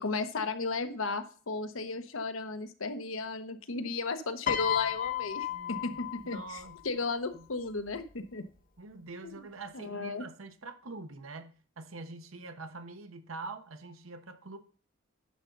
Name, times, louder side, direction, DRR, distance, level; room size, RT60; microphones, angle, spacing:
voice 1, 0.0-5.5 5.8-8.5 9.2-9.4 9.7-10.3, left 3 dB, 85° left, 1.1 m, -34 dB
Piano, 4.5-6.8 7.9-8.1, left 11 dB, 45° left, 0.7 m, -34 dB
voice 2, 5.5-6.8 7.3-7.4 8.8-11.5 11.8-14.6, right 3 dB, 90° right, 1.1 m, -45 dB
10.5 x 3.9 x 6.5 m
head